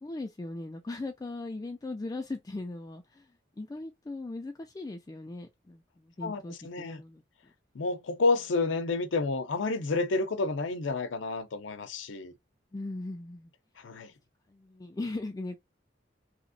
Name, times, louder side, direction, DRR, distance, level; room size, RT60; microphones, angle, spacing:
voice 1, 0.0-7.5 12.7-13.5 14.5-15.6, left 2 dB, 20° left, 0.3 m, -39 dB
voice 2, 6.2-7.0 7.7-12.3 13.8-14.1, left 3 dB, 90° left, 0.6 m, -30 dB
3.4 x 2.9 x 2.6 m
head